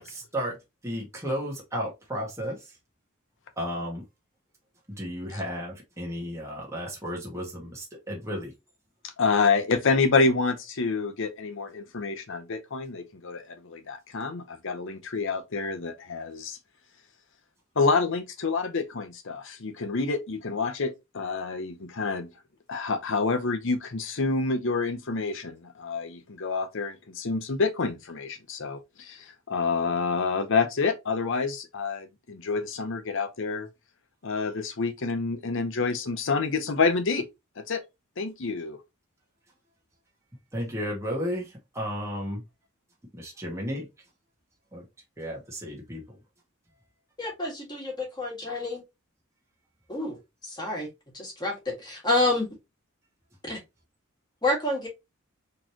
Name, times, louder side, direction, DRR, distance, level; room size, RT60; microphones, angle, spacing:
voice 1, 0.0-0.6 0.8-2.8 3.6-4.0 4.9-8.5 40.5-42.4 43.1-43.9 44.7-44.8 45.2-46.2, equal, 15° right, 1.4 m, -33 dB
voice 2, 9.2-16.6 17.8-22.3 22.7-33.7 34.2-37.3 37.6-37.8 38.2-38.8, left 4 dB, 60° left, 0.8 m, -28 dB
voice 3, 47.2-48.8 49.9-50.2 50.4-50.9 51.1-52.5 53.4-53.6 54.4-54.9, left 2 dB, 20° left, 1.8 m, -28 dB
4.2 x 3.3 x 2.9 m
head